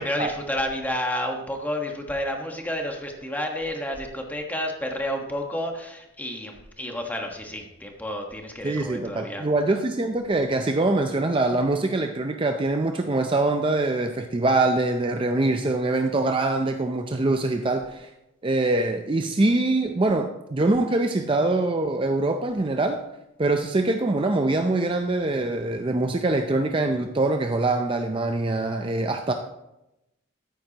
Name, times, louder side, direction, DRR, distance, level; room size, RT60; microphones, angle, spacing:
voice 1, 0.0-9.4, left 1 dB, 10° left, 2 dB, 1.3 m, -30 dB
voice 2, 8.6-18.1 18.4-23.0 23.4-29.3, right 2 dB, 25° right, 5 dB, 0.5 m, -24 dB
14.0 x 9.1 x 2.9 m, 0.91 s
head